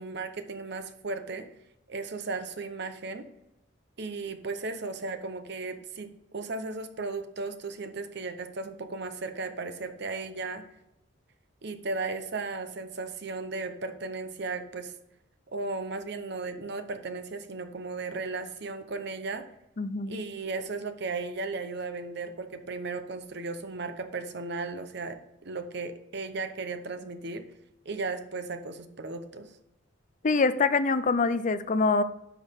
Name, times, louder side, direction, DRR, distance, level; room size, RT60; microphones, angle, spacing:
voice 1, 0.0-1.5 1.9-3.2 4.0-10.6 11.6-14.9 15.5-19.5 20.1-27.4 27.8-29.5, right 3 dB, 60° right, 9 dB, 0.9 m, -35 dB
voice 2, 19.8-20.2 30.2-32.0, left 4 dB, 40° left, 13 dB, 0.5 m, -24 dB
10.0 x 6.3 x 3.6 m, 0.82 s
head